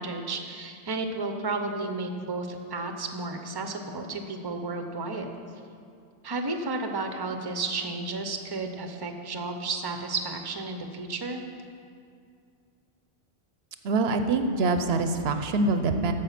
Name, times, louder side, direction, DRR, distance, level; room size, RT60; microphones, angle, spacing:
voice 1, 0.0-5.3 6.2-11.4, right 3 dB, 25° right, 5 dB, 0.7 m, -32 dB
voice 2, 13.8-16.1, right 3 dB, 75° right, 8 dB, 0.9 m, -25 dB
14.0 x 5.2 x 5.8 m, 2.3 s
omnidirectional pair, 1.1 m